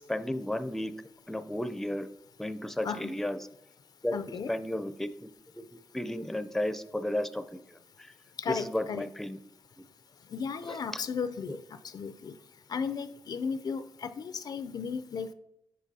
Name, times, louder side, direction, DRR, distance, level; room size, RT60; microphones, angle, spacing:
voice 1, 0.1-2.1 2.4-3.4 4.0-4.2 4.5-5.3 5.6-8.1 8.5-9.4 10.6-11.0 11.5-11.6, left 1 dB, 5° left, 11 dB, 0.5 m, -34 dB
voice 2, 4.1-4.5 8.4-9.1 10.3-11.6 11.9-12.4 12.7-15.3, left 6 dB, 60° left, 12 dB, 0.4 m, -35 dB
8.3 x 5.9 x 2.7 m, 0.83 s
cardioid pair, 55°, 8 cm